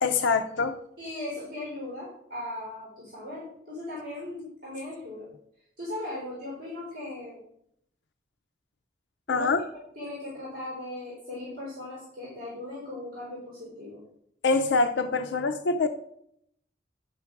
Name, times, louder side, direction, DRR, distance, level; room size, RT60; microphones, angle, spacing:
voice 1, 0.0-0.8 9.3-9.6 14.4-15.9, left 4 dB, 85° left, 7 dB, 0.5 m, -24 dB
voice 2, 1.0-5.3 5.8-7.4 9.3-9.5 9.9-14.0, left 1 dB, 55° right, -6 dB, 3.3 m, -38 dB
10.0 x 4.8 x 5.8 m, 0.74 s
head